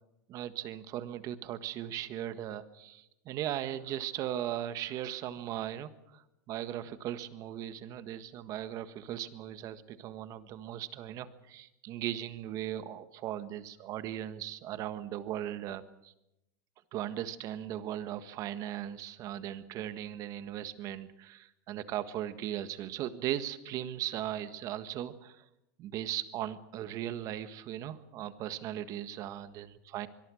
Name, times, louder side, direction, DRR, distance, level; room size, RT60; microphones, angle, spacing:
voice 1, 0.3-16.1 16.9-25.4 25.8-30.1, right 12 dB, 35° right, 12 dB, 1.6 m, -38 dB
24.5 x 22.0 x 6.4 m, 0.86 s
supercardioid pair, 155°, 9 cm